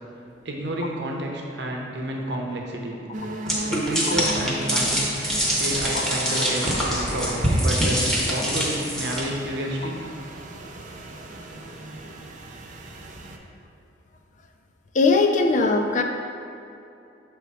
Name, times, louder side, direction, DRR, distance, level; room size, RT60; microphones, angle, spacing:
voice 1, 0.4-3.0 3.7-5.1 5.6-10.0, right 1 dB, 65° right, 0 dB, 0.8 m, -30 dB
sound 1, 3.1-13.4, right 1 dB, 40° right, 0.5 m, -36 dB
sound 2, 3.5-9.2, equal, ahead, 0.9 m, -24 dB
voice 2, 14.9-16.0, left 3 dB, 40° left, 4 dB, 0.4 m, -20 dB
7.0 x 3.5 x 4.7 m, 2.8 s
head